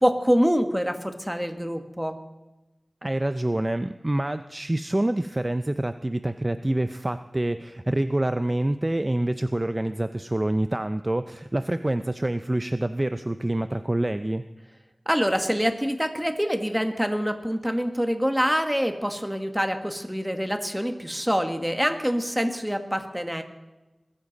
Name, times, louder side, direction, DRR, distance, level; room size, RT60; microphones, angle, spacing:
voice 1, 0.0-2.2 15.1-23.4, equal, 5° right, 6 dB, 1.5 m, -25 dB
voice 2, 3.0-14.4, right 1 dB, 25° right, 11 dB, 0.4 m, -26 dB
20.5 x 14.0 x 4.0 m, 1.1 s
wide cardioid pair, 70°, 0 cm